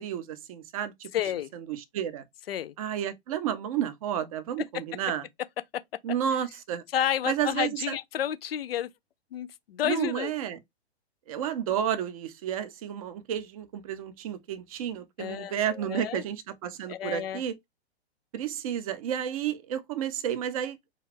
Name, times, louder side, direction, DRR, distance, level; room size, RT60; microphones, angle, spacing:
voice 1, 0.0-1.1 1.5-2.2 2.8-5.2 6.0-6.8 7.2-8.0 9.8-10.6 11.3-17.5 18.3-21.0, right 9 dB, 35° right, 0.4 m, -31 dB
voice 2, 1.1-1.5 2.5-2.7 6.9-8.9 9.3-10.3 15.2-16.2 16.9-17.4, left 10 dB, 65° left, 0.4 m, -30 dB
2.4 x 2.3 x 3.3 m
figure-of-eight pair, 120°, 33 cm